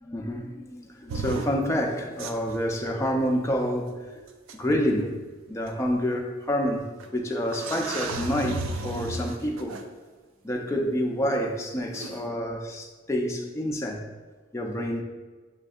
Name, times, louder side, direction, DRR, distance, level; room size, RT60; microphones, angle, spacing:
voice 1, 0.0-4.2 4.6-5.2 5.5-9.8 10.4-14.0 14.5-15.0, equal, 15° left, 1 dB, 0.4 m, -28 dB
sound 1, 1.1-1.5 2.2-2.5 3.9-4.0 4.5-4.6 5.7-5.8 7.0-7.1 7.5-9.8 11.9-12.2, right 3 dB, 75° right, 0.4 m, -33 dB
6.8 x 2.6 x 2.4 m, 1.4 s
head